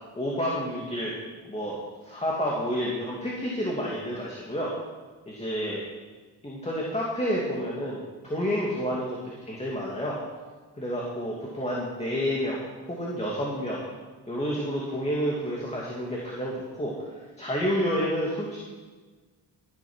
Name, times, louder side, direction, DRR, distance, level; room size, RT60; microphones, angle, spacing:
voice 1, 0.1-1.1 1.4-4.7 5.3-5.8 6.4-10.2 10.7-12.6 12.8-13.8 14.3-16.9 17.4-18.6, equal, 15° left, -4 dB, 2.5 m, -29 dB
14.0 x 9.4 x 6.3 m, 1.4 s
cardioid pair, 120°, 41 cm